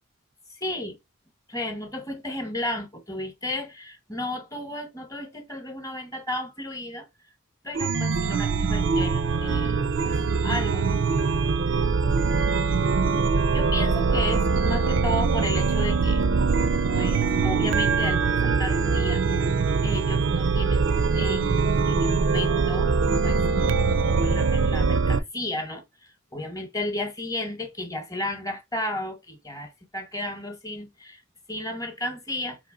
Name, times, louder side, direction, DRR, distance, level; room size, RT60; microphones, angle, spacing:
voice 1, 0.5-1.0 1.5-7.1 7.6-11.0 13.5-16.2 16.9-19.2 19.5-20.9 21.1-22.9 23.2-23.4 24.2-31.2 31.5-32.6, left 1 dB, 15° left, 0.9 m, -33 dB
Chime, 7.7-25.2, right 4 dB, 65° right, 0.4 m, -23 dB
4.1 x 2.9 x 3.6 m
head